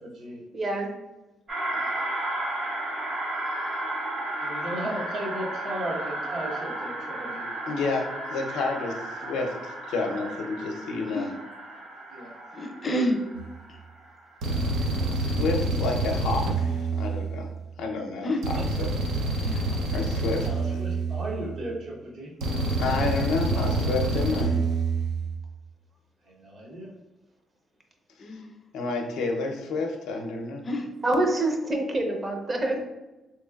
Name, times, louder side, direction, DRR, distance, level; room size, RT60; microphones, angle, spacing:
voice 1, 0.0-0.4 4.4-7.5 12.1-12.3 20.4-22.3 26.4-26.9, right 1 dB, 70° right, -4 dB, 1.0 m, -35 dB
voice 2, 0.5-0.9 31.0-32.8, right 1 dB, 30° right, 3 dB, 0.7 m, -26 dB
sound 1, 1.5-14.2, right 1 dB, 55° right, 1.3 m, -34 dB
voice 3, 7.7-11.3 15.1-17.5 17.8-18.9 19.9-20.8 22.8-24.5 28.7-30.7, left 3 dB, 90° left, 2 dB, 0.5 m, -30 dB
voice 4, 12.5-13.2 18.2-18.4 19.4-19.8 28.2-28.6 30.6-30.9, equal, 35° left, 4 dB, 0.5 m, -29 dB
sound 2, 13.3-13.6 14.4-17.7 18.4-21.7 22.4-25.4, right 2 dB, 85° right, 0.5 m, -27 dB
3.6 x 3.0 x 2.3 m, 1.0 s
cardioid pair, 90°, 0 cm